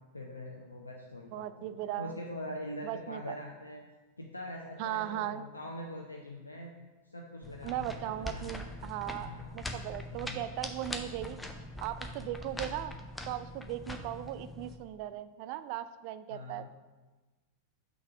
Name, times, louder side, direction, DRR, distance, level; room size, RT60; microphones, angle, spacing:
voice 1, 0.1-3.8 4.2-6.7 7.0-8.0 8.3-8.7 9.2-9.6 10.2-10.4 16.3-16.7, left 1 dB, 80° left, 0 dB, 0.6 m, -43 dB
voice 2, 1.3-2.1 2.8-3.4 4.8-5.4 7.6-11.4 11.8-12.9 13.3-16.7, right 13 dB, 45° right, 13 dB, 0.3 m, -38 dB
sound 1, 7.4-14.8, left 1 dB, 5° left, 0.6 m, -42 dB
6.2 x 4.0 x 6.0 m, 1.2 s
figure-of-eight pair, 90°, 0 cm